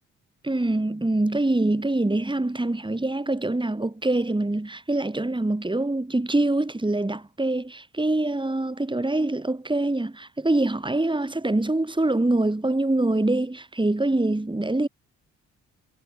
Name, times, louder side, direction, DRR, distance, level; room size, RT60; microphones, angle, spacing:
voice 1, 0.4-14.9, right 2 dB, 15° right, 3.3 m, -24 dB
supercardioid pair, 50°, 34 cm